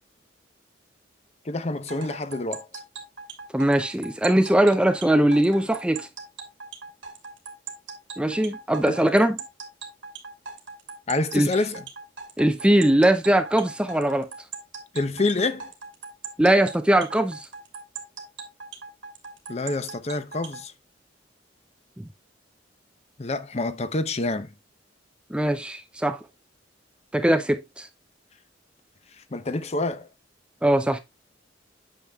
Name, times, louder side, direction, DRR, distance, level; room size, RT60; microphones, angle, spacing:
voice 1, 1.4-2.7 8.8-8.9 11.1-11.8 14.9-15.7 19.5-20.7 23.2-24.5 29.2-30.1, left 2 dB, 35° left, 0.6 m, -27 dB
sound 1, 1.9-20.6, right 5 dB, 80° right, 1.9 m, -39 dB
voice 2, 3.5-6.1 8.2-9.4 11.3-11.5 12.4-14.3 16.4-17.5 22.0-22.1 25.3-26.2 27.1-27.9 30.6-31.0, right 1 dB, 5° right, 0.4 m, -21 dB
8.8 x 6.5 x 2.3 m
head